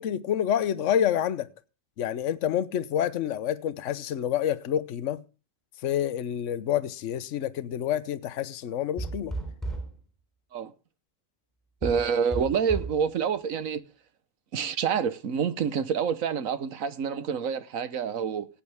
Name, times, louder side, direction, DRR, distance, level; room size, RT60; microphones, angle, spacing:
voice 1, 0.0-1.5 2.0-5.2 5.8-9.3, left 10 dB, 65° left, 1.1 m, -28 dB
sound 1, 9.0-10.0 11.8-13.0, right 2 dB, ahead, 3.5 m, -33 dB
voice 2, 11.8-13.8 14.5-18.5, right 7 dB, 85° right, 1.4 m, -27 dB
17.0 x 8.9 x 3.4 m
omnidirectional pair, 1.4 m